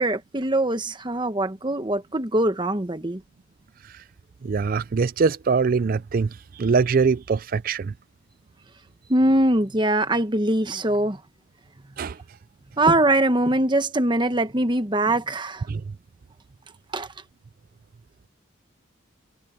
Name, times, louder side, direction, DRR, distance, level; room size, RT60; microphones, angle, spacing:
voice 1, 0.0-3.2 9.1-11.2 12.8-15.7 16.9-17.1, right 1 dB, 20° right, 1.1 m, -22 dB
voice 2, 4.4-7.9 12.0-12.2 15.7-15.8, right 5 dB, 45° right, 0.4 m, -23 dB
head